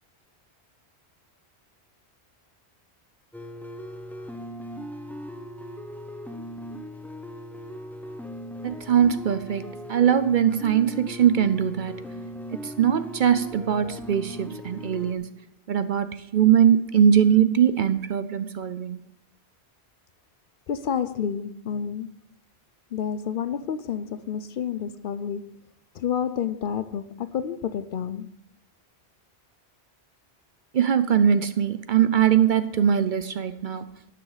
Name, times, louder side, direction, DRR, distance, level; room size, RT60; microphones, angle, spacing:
sound 1, 3.3-15.1, left 1 dB, ahead, 0.7 m, -39 dB
voice 1, 8.6-12.0 12.5-15.3 15.7-19.0 30.7-33.8, right 9 dB, 55° right, 0.6 m, -21 dB
voice 2, 20.7-22.2 22.9-25.6 25.9-28.3, left 8 dB, 60° left, 0.7 m, -29 dB
11.5 x 9.9 x 4.0 m
omnidirectional pair, 1.1 m